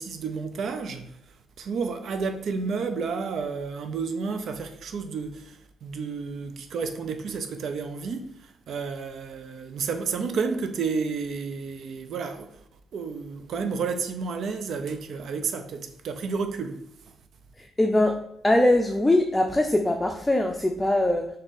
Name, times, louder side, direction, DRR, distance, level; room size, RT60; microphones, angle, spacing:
voice 1, 0.0-12.6 12.9-16.8, right 5 dB, 65° right, 0.3 m, -31 dB
voice 2, 17.6-18.1 18.4-21.3, left 1 dB, 15° left, 0.4 m, -22 dB
3.7 x 2.6 x 3.9 m
hypercardioid pair, 45°, 0 cm